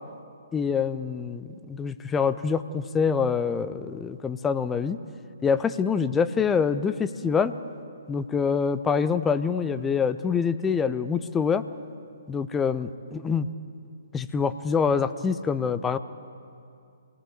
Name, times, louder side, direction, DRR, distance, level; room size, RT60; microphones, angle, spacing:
voice 1, 0.5-5.0 5.4-7.5 8.1-11.6 12.3-13.5 14.1-16.0, left 6 dB, 10° left, 12 dB, 0.7 m, -25 dB
25.5 x 19.5 x 8.5 m, 2.5 s
figure-of-eight pair, 130°, 0 cm